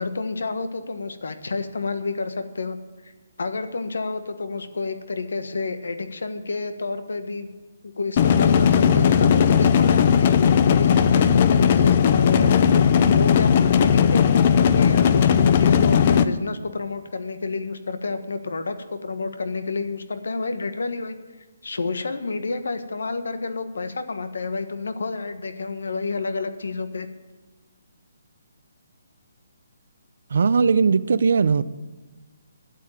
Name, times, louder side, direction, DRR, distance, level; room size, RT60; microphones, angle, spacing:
voice 1, 0.0-2.8 3.0-3.1 3.4-7.5 7.8-21.2 21.6-27.1, left 3 dB, 80° left, 10 dB, 1.3 m, -30 dB
sound 1, 8.2-16.2, left 7 dB, 30° left, 0.5 m, -17 dB
voice 2, 30.3-31.6, right 5 dB, 55° right, 16 dB, 0.5 m, -19 dB
11.5 x 8.3 x 8.9 m, 1.2 s
hypercardioid pair, 175°, 0 cm